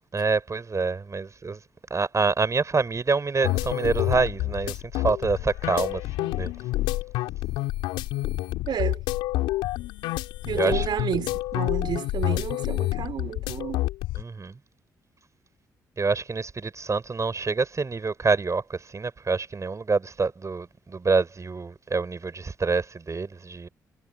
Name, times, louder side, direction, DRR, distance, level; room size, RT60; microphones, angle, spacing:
voice 1, 0.1-1.6 1.9-6.5 10.5-10.9 14.1-14.6 16.0-23.7, right 4 dB, 40° right, 4.4 m, -26 dB
sound 1, 3.4-14.2, left 17 dB, 85° left, 3.7 m, -28 dB
voice 2, 8.7-9.0 10.5-13.8, right 8 dB, 65° right, 3.8 m, -31 dB
hypercardioid pair, 45°, 8 cm